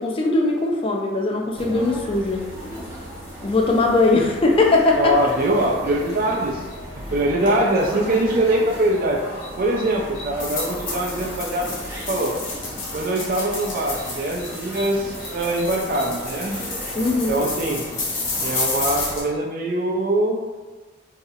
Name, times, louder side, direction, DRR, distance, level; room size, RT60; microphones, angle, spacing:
voice 1, 0.0-2.5 3.4-5.3 16.9-17.5, left 2 dB, 30° left, 0 dB, 0.4 m, -20 dB
sound 1, 1.5-19.2, equal, 15° right, 0.7 m, -36 dB
sound 2, 2.1-19.2, left 3 dB, 80° left, 1.0 m, -33 dB
voice 2, 5.0-6.6 7.1-9.2 9.6-11.8 12.1-12.4 12.9-16.6 17.3-17.8 18.4-20.4, right 1 dB, 50° right, 0 dB, 0.4 m, -22 dB
4.0 x 2.7 x 2.4 m, 1.3 s
head